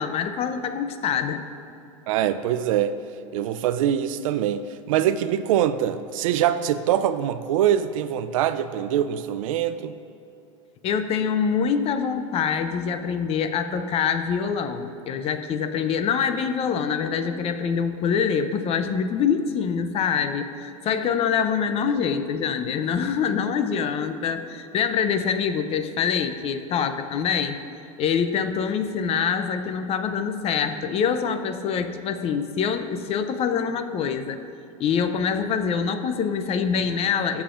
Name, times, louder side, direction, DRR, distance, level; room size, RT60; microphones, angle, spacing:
voice 1, 0.0-1.4 10.8-27.6 28.0-34.4 34.8-37.4, left 6 dB, 35° left, 9 dB, 0.6 m, -25 dB
voice 2, 2.1-2.9 3.3-9.9, right 10 dB, 75° right, 12 dB, 0.5 m, -23 dB
17.5 x 7.1 x 2.6 m, 2.7 s
hypercardioid pair, 110°, 17 cm